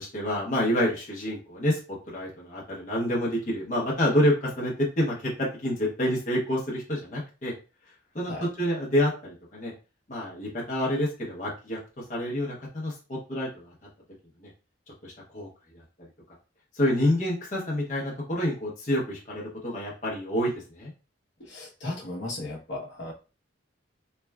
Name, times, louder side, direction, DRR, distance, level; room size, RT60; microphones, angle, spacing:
voice 1, 0.0-1.8 2.1-7.5 8.1-9.7 10.1-13.7 14.4-14.5 15.0-15.5 15.7-15.8 16.7-20.9, left 1 dB, 40° left, -5 dB, 0.8 m, -28 dB
voice 2, 21.5-23.1, left 2 dB, 70° left, -4 dB, 0.9 m, -35 dB
3.2 x 2.3 x 2.3 m, 0.32 s
head